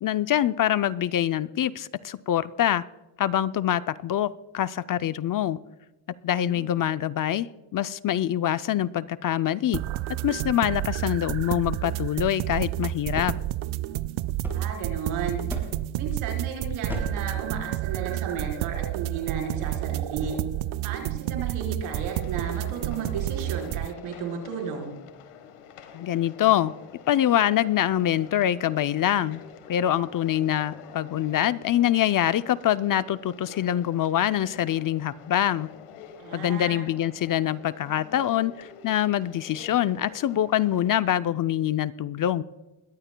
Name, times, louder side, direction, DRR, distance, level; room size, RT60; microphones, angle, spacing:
voice 1, 0.0-2.8 3.2-5.6 6.2-9.8 10.2-13.3 25.9-26.7 27.1-29.4 29.7-35.7 36.3-42.4, left 11 dB, 45° left, 14 dB, 0.5 m, -25 dB
voice 2, 6.3-6.6 14.5-15.4 16.0-20.4 20.8-24.9 36.2-36.9, right 6 dB, 90° right, 1 dB, 4.3 m, -34 dB
sound 1, 9.7-23.9, right 15 dB, 70° right, 0.6 m, -30 dB
sound 2, 13.1-15.1 15.5-16.0 16.9-17.3, right 1 dB, 5° right, 5.7 m, -35 dB
sound 3, 21.8-41.2, left 8 dB, 80° left, 1.5 m, -47 dB
21.5 x 15.0 x 2.2 m, 1.1 s
cardioid pair, 95°, 49 cm